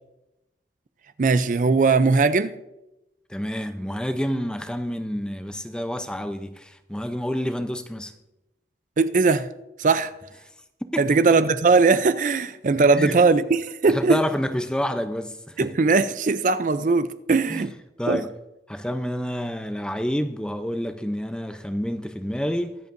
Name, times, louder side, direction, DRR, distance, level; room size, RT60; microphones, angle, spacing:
voice 1, 1.2-2.5 9.0-9.5 9.8-10.1 11.0-14.2 15.6-17.7 18.1-18.2, right 4 dB, 45° right, 0.4 m, -19 dB
voice 2, 3.3-8.1 10.9-11.1 12.9-13.2 13.9-15.7 17.5-17.7 18.0-18.3 18.7-22.8, equal, 5° left, 0.5 m, -28 dB
23.0 x 7.9 x 2.6 m
head